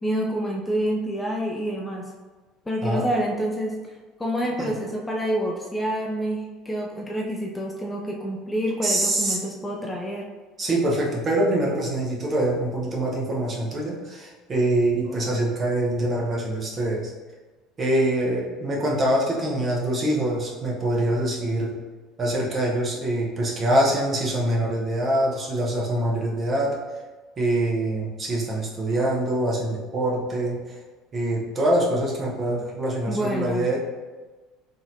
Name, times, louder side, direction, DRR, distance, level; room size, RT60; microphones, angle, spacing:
voice 1, 0.0-2.1 2.7-3.8 4.2-10.3 33.1-33.7, equal, 15° left, -1 dB, 0.5 m, -27 dB
voice 2, 8.8-9.4 10.6-17.1 17.8-21.8 22.2-26.8 27.4-30.8 31.1-33.8, right 1 dB, 35° right, -3 dB, 1.0 m, -24 dB
3.9 x 2.7 x 2.6 m, 1.3 s
figure-of-eight pair, 65°, 0 cm